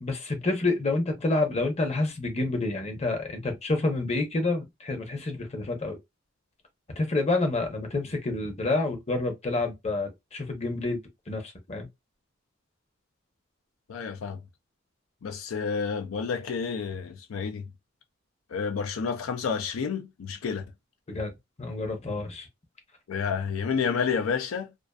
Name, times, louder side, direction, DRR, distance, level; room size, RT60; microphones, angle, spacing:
voice 1, 0.0-6.0 7.0-11.0 11.3-11.9 21.1-21.3 21.6-22.5, left 2 dB, 35° left, 0.7 m, -28 dB
voice 2, 13.9-14.4 15.2-17.7 18.5-20.6 23.1-24.7, left 6 dB, 85° left, 0.4 m, -30 dB
2.4 x 2.4 x 2.3 m
head